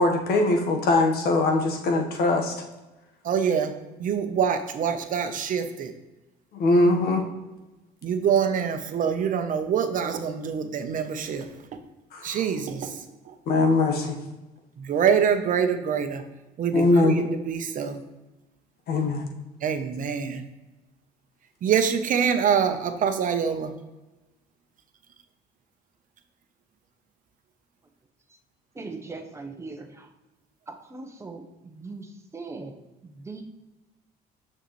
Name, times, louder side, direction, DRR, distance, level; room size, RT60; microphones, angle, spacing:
voice 1, 0.0-2.5 6.6-7.2 12.1-12.3 13.5-14.2 16.7-17.1 18.9-19.2, left 2 dB, 65° left, 2 dB, 1.4 m, -21 dB
voice 2, 3.2-3.7 4.0-5.9 8.0-11.5 12.2-13.3 14.8-16.2 16.6-18.0 19.6-20.4 21.6-23.7, right 7 dB, 50° right, 8 dB, 0.8 m, -25 dB
voice 3, 28.7-30.1 30.7-32.7 33.0-33.4, right 3 dB, 15° right, 3 dB, 1.0 m, -40 dB
6.5 x 6.5 x 3.2 m, 1.1 s
cardioid pair, 110°, 17 cm